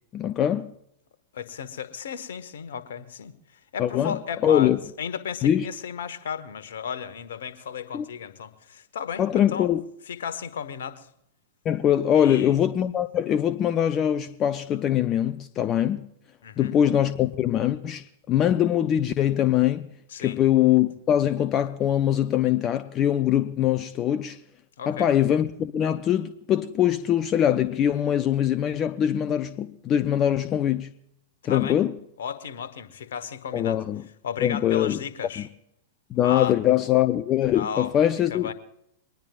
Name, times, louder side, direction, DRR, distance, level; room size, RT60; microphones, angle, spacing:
voice 1, 0.1-0.7 3.8-4.2 4.4-4.8 5.4-5.7 7.9-8.1 9.2-9.8 11.6-16.1 16.6-19.9 20.2-24.4 24.9-30.9 31.4-32.0 33.5-34.0 34.4-35.0 35.4-35.5 36.1-38.5, left 10 dB, 30° left, 0.6 m, -23 dB
voice 2, 1.3-3.3 3.7-9.7 10.1-11.1 12.1-12.5 16.4-16.8 20.1-20.4 24.8-25.1 31.4-31.8 32.2-33.8 34.2-35.5 36.2-36.5 37.5-37.9 38.3-38.5, left 7 dB, 60° left, 1.2 m, -34 dB
23.0 x 20.0 x 2.4 m
figure-of-eight pair, 100°, 0 cm